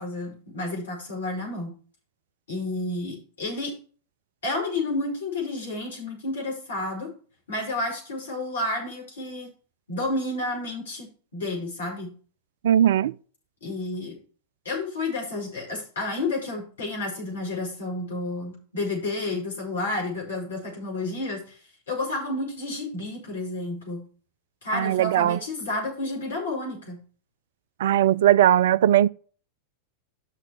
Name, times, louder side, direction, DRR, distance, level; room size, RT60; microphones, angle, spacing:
voice 1, 0.0-1.8 2.5-3.8 4.4-7.1 7.5-9.5 9.9-12.1 13.6-14.2 14.6-21.6 21.9-24.0 24.6-27.0, left 2 dB, 65° left, 5.0 m, -31 dB
voice 2, 12.6-13.1 24.7-25.4 27.8-29.1, right 11 dB, 60° right, 0.3 m, -19 dB
6.6 x 6.1 x 7.1 m
figure-of-eight pair, 90°, 0 cm